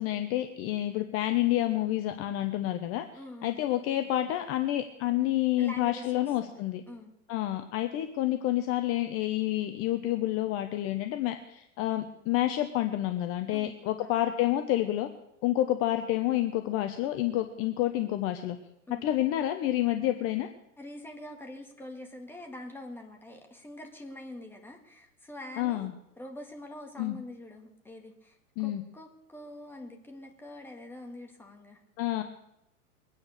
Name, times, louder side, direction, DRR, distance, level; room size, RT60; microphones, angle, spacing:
voice 1, 0.0-3.1 3.4-6.8 7.3-15.1 15.4-18.6 19.0-20.5 25.6-25.9 27.0-27.2 28.6-28.8 32.0-32.2, left 14 dB, 30° left, 8 dB, 1.0 m, -29 dB
voice 2, 3.2-3.6 5.6-6.6 6.9-7.1 13.5-13.7 14.0-14.2 18.9-19.1 20.8-25.9 26.2-31.8, left 1 dB, 5° left, 2 dB, 2.1 m, -45 dB
22.5 x 9.7 x 6.6 m, 0.82 s
hypercardioid pair, 135°, 43 cm